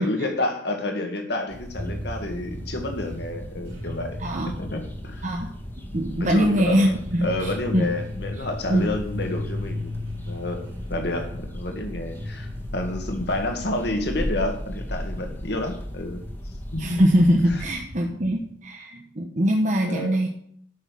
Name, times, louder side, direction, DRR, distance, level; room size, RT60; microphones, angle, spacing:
voice 1, 0.0-4.2 4.6-5.3 5.9-6.9 7.2-9.9 10.3-10.6 10.9-16.2 16.7-16.9 17.5-17.6 18.1-18.2 19.8-20.2, left 1 dB, 60° left, 4 dB, 2.0 m, -29 dB
sound 1, 1.5-17.8, equal, 10° left, 1.6 m, -37 dB
sound 2, 1.7-18.5, left 1 dB, 70° right, 4.0 m, -38 dB
voice 2, 5.9-7.9 8.7-8.9 16.8-20.3, equal, 40° right, 1 dB, 1.1 m, -22 dB
12.5 x 6.4 x 6.3 m, 0.65 s
head